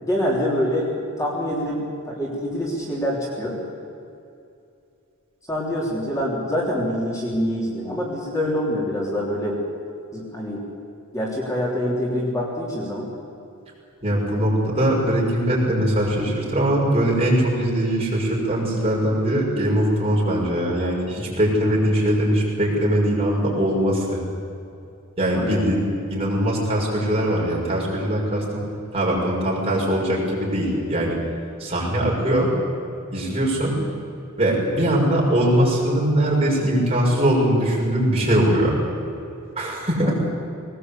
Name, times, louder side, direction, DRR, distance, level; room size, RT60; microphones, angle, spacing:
voice 1, 0.0-0.9 1.2-3.6 5.5-9.6 10.1-10.7 11.1-13.1 25.3-25.7 40.0-40.1, equal, 15° left, -4 dB, 3.6 m, -25 dB
voice 2, 14.0-24.2 25.2-28.6 28.9-31.2 31.6-32.5 33.1-33.8 34.4-38.8 39.6-40.1, right 1 dB, 30° right, -3 dB, 6.2 m, -21 dB
20.0 x 19.5 x 8.4 m, 2.6 s
head